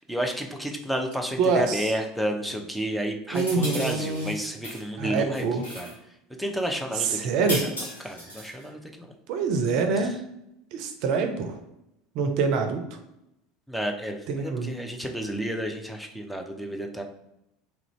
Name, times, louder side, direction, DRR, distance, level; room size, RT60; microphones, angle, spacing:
voice 1, 0.1-5.9 6.4-9.1 10.0-10.2 13.7-17.0, equal, ahead, 2 dB, 0.5 m, -31 dB
voice 2, 1.4-1.9 3.3-4.3 5.0-5.6 7.0-7.6 9.3-10.1 10.7-11.6 12.2-12.8 14.3-14.7, right 4 dB, 55° right, 5 dB, 0.5 m, -25 dB
sound 1, 3.3-4.8 5.1-6.0 7.5-8.6, equal, 85° left, 1.2 m, -36 dB
3.1 x 2.5 x 3.0 m, 0.84 s
hypercardioid pair, 75°, 0 cm